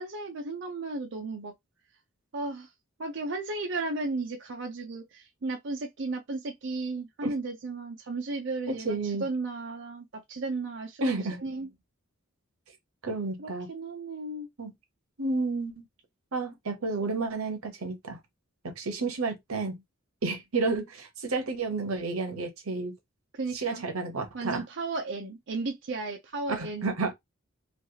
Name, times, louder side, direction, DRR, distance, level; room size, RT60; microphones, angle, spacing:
voice 1, 0.0-1.5 2.3-2.7 3.0-11.0 11.4-11.7 13.4-14.5 23.3-23.9 24.3-26.9, right 3 dB, 60° right, 0.6 m, -34 dB
voice 2, 8.7-9.2 11.0-11.4 13.0-13.7 14.6-14.7 15.2-15.8 16.3-18.2 18.6-19.8 20.2-22.9 23.5-24.6 26.5-27.1, right 3 dB, 90° right, 0.9 m, -31 dB
3.2 x 2.3 x 2.8 m
head